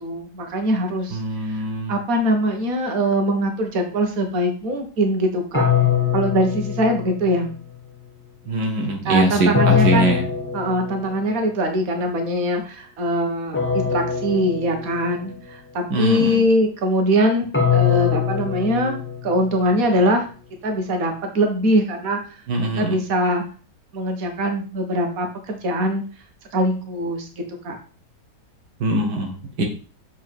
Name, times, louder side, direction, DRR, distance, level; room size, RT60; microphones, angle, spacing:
voice 1, 0.0-1.6 1.9-5.7 6.1-7.5 9.1-10.2 10.5-19.0 19.2-20.3 20.6-22.2 22.8-23.4 23.9-26.0 26.5-27.3 27.6-27.8 29.6-29.7, equal, 55° right, 3 dB, 1.8 m, -22 dB
voice 2, 1.1-1.9 8.5-10.2 15.9-16.4 22.5-23.0 28.8-29.6, right 1 dB, 75° right, 2 dB, 1.8 m, -22 dB
sound 1, 5.5-7.6 9.5-11.4 13.5-15.4 17.5-19.7, left 7 dB, 10° left, 0.9 m, -22 dB
7.4 x 4.6 x 4.6 m, 0.38 s
omnidirectional pair, 1.8 m